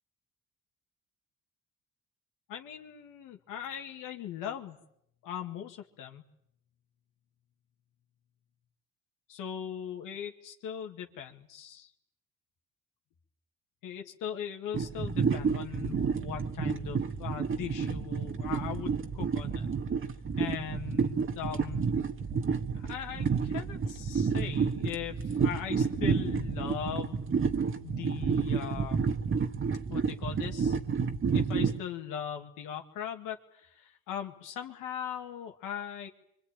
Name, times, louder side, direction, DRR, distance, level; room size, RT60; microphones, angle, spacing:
voice 1, 2.5-4.8 5.2-6.2 9.3-11.9 13.8-19.7 20.4-21.9 22.7-27.2 27.8-29.0 29.9-30.8 31.3-36.1, left 9 dB, 90° left, 4 dB, 2.3 m, -39 dB
sound 1, 14.7-31.8, right 5 dB, 40° right, 1.6 m, -30 dB
25.0 x 24.0 x 9.2 m, 0.75 s
cardioid pair, 85°, 31 cm